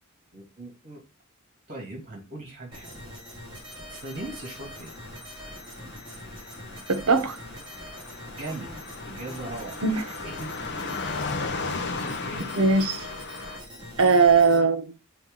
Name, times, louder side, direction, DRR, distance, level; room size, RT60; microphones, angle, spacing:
voice 1, 0.3-1.0 1.7-3.1 3.7-5.0 8.4-8.7 9.1-9.8 10.2-10.5 11.6-12.5, right 2 dB, 40° right, 2.9 m, -39 dB
sound 1, 2.7-14.6, equal, 20° right, 2.5 m, -43 dB
Car passing by, 3.7-13.6, left 4 dB, 55° left, 0.9 m, -37 dB
voice 2, 6.9-7.4 9.8-10.0 12.6-13.0 14.0-14.9, right 4 dB, 75° right, 0.9 m, -20 dB
7.1 x 3.9 x 3.8 m
head